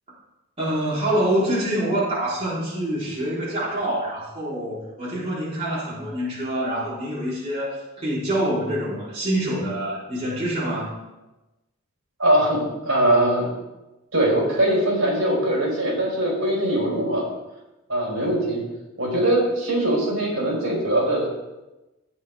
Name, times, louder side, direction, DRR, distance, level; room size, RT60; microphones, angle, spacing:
voice 1, 0.6-10.9, right 1 dB, 30° right, -9 dB, 4.1 m, -26 dB
voice 2, 12.2-13.5 14.1-17.2 17.9-18.6 19.0-21.3, right 1 dB, 70° right, -3 dB, 4.9 m, -21 dB
15.0 x 8.9 x 3.6 m, 1.0 s
head